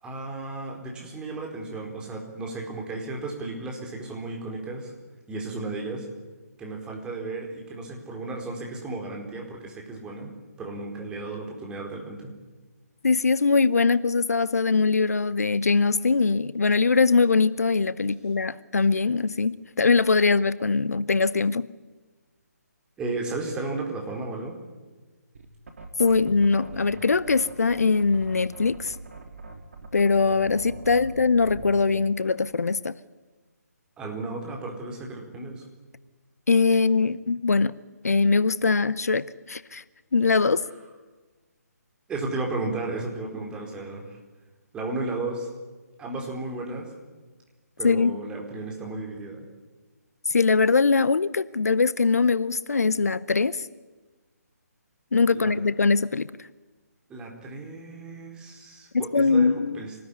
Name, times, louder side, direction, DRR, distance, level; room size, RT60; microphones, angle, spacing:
voice 1, 0.0-4.9 5.3-6.1 6.6-12.3 23.0-24.6 34.0-35.6 42.1-44.2 44.7-45.5 46.0-46.9 47.8-49.4 55.3-55.5 57.1-60.0, right 3 dB, 10° right, 4.5 m, -34 dB
voice 2, 13.0-21.7 26.0-29.0 29.9-32.9 36.5-39.8 40.1-40.7 47.8-48.2 50.3-53.7 55.1-56.5 58.9-59.8, left 4 dB, 65° left, 0.8 m, -22 dB
sound 1, 25.3-32.0, right 3 dB, 55° right, 3.5 m, -42 dB
26.0 x 19.5 x 9.9 m
figure-of-eight pair, 145°, 9 cm